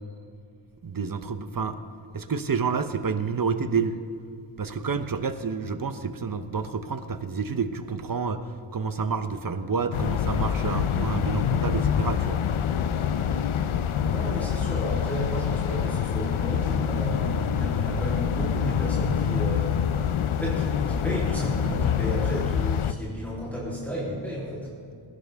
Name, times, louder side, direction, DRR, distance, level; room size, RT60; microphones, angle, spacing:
voice 1, 0.8-1.8 2.1-4.0 4.6-8.4 8.7-12.4, right 5 dB, 40° right, 10 dB, 0.9 m, -29 dB
sound 1, 9.9-22.9, left 8 dB, 75° left, 0.7 m, -26 dB
voice 2, 14.1-19.9 20.4-24.7, equal, 5° left, -7 dB, 3.3 m, -33 dB
20.0 x 16.5 x 3.6 m, 2.3 s
wide cardioid pair, 95°, 50 cm